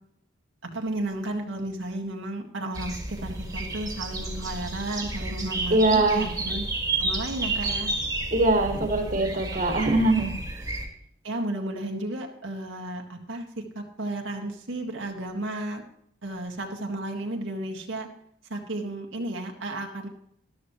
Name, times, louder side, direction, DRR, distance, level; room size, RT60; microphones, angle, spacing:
voice 1, 0.6-6.6 7.0-7.9 9.1-9.2 9.5-9.6 11.2-15.8 16.2-18.1 18.5-20.1, right 1 dB, 75° right, 1 dB, 1.9 m, -33 dB
sound 1, 2.7-10.9, right 2 dB, 15° right, 2.0 m, -31 dB
voice 2, 5.7-6.3 8.3-10.4, right 2 dB, 40° right, 3 dB, 1.9 m, -22 dB
13.5 x 12.5 x 3.1 m, 0.70 s
head